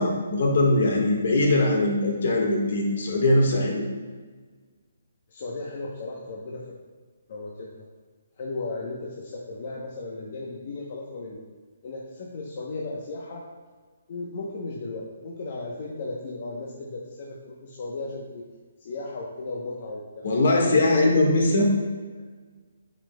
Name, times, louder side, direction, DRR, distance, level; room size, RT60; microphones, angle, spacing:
voice 1, 0.0-3.8 20.2-21.7, left 2 dB, 60° left, 0 dB, 1.5 m, -21 dB
voice 2, 5.3-6.6 7.3-7.7 8.4-11.4 11.8-13.4 14.1-18.4 18.8-21.1 22.1-22.2, left 3 dB, 40° left, -3 dB, 0.8 m, -35 dB
9.7 x 5.2 x 2.2 m, 1.4 s
hypercardioid pair, 170°, 0 cm